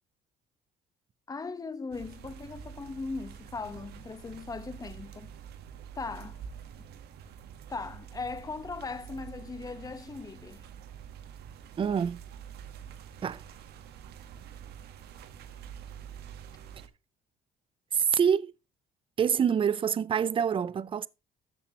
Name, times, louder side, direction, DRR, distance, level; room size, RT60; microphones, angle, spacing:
voice 1, 1.3-5.3 5.9-6.4 7.7-10.6, left 4 dB, 20° left, 1.0 m, -39 dB
sound 1, 1.9-16.9, right 8 dB, 75° right, 1.3 m, -47 dB
voice 2, 11.8-12.2 13.2-13.4 17.9-18.5 19.2-21.1, right 7 dB, 30° right, 0.5 m, -26 dB
13.5 x 7.0 x 2.9 m
cardioid pair, 110°, 17 cm